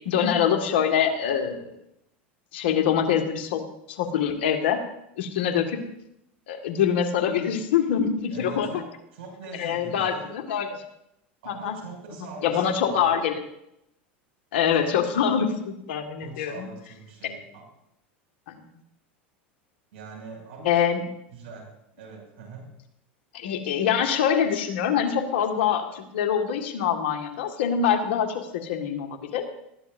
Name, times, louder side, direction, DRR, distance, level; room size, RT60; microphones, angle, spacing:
voice 1, 0.1-1.7 2.5-3.6 4.0-4.8 5.2-5.8 6.5-8.7 9.6-10.8 11.5-11.7 12.4-13.4 14.5-16.7 18.5-18.6 20.6-21.0 23.3-29.4, left 8 dB, 75° left, 4 dB, 2.0 m, -24 dB
voice 2, 8.3-10.4 11.4-13.3 16.2-17.7 19.9-20.9 21.3-22.7, right 4 dB, 75° right, 1 dB, 6.5 m, -42 dB
19.0 x 13.5 x 2.7 m, 0.81 s
hypercardioid pair, 90°, 6 cm